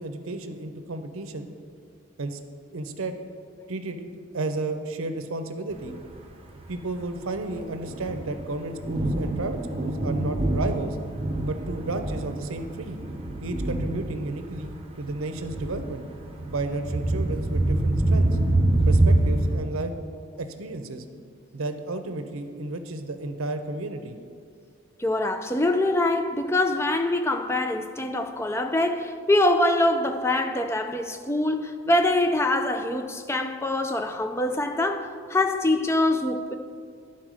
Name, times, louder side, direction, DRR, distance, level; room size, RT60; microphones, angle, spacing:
voice 1, 0.0-1.5 2.2-2.4 2.7-3.2 3.7-5.9 6.7-11.0 11.4-13.0 13.4-16.0 16.5-18.4 18.9-19.9 20.4-21.0 21.5-24.1, right 2 dB, 80° right, 0.7 m, -32 dB
Thunder, 5.9-19.6, right 1 dB, 25° right, 0.7 m, -26 dB
voice 2, 25.0-36.5, left 1 dB, 10° left, 0.4 m, -24 dB
10.5 x 4.3 x 6.2 m
head